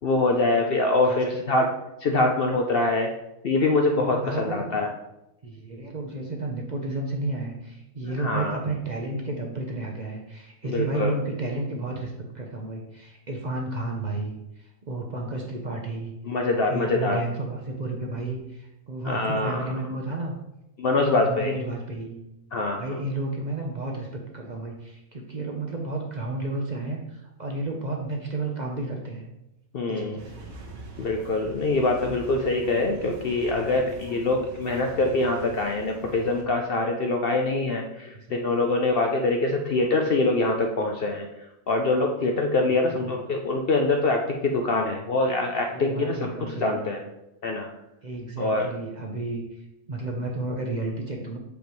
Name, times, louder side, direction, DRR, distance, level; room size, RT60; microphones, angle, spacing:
voice 1, 0.0-1.7 2.0-3.1 3.4-4.9 8.0-8.6 10.6-11.1 16.2-17.2 19.0-19.7 20.8-21.6 22.5-22.8 29.7-30.2 31.0-41.3 41.7-47.0 47.4-47.7 48.4-48.7, left 2 dB, 60° left, 2 dB, 0.6 m, -24 dB
voice 2, 4.1-4.6 5.4-16.1 16.7-20.3 21.0-22.2 22.8-29.3 29.9-30.5 38.0-38.4 43.0-43.1 45.7-46.9 48.0-51.4, right 2 dB, 40° right, 0 dB, 0.7 m, -32 dB
sound 1, 30.2-36.4, right 3 dB, 80° right, 1.5 m, -43 dB
6.8 x 5.1 x 3.1 m, 0.89 s
omnidirectional pair, 1.4 m